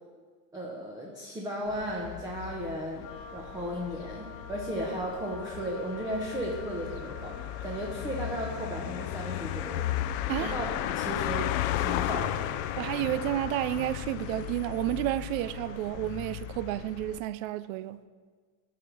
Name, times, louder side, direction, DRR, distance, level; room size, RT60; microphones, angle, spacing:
voice 1, 0.5-3.1 3.3-9.9 10.4-10.7 10.9-12.5, equal, 10° right, 0.9 m, -35 dB
sound 1, 1.7-17.2, left 13 dB, 50° left, 0.4 m, -35 dB
Wind instrument woodwind instrument, 3.0-13.5, left 4 dB, 30° left, 0.9 m, -47 dB
voice 2, 12.8-18.0, right 14 dB, 65° right, 0.5 m, -31 dB
14.0 x 5.0 x 6.2 m
supercardioid pair, 160°, 44 cm